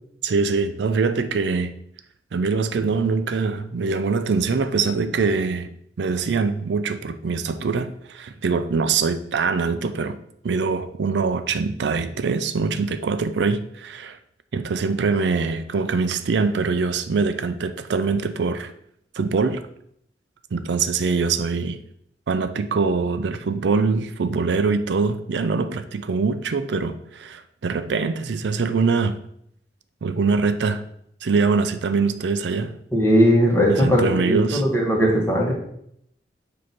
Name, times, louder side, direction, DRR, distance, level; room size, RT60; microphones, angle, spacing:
voice 1, 0.2-1.7 2.3-5.7 6.0-10.2 10.4-14.2 14.5-18.7 19.2-19.6 20.5-21.8 22.3-29.2 30.0-30.9 31.2-32.8 33.7-34.6, right 4 dB, 75° right, 0.4 m, -23 dB
voice 2, 32.9-35.5, equal, 15° left, 1.6 m, -18 dB
7.5 x 2.8 x 6.0 m
head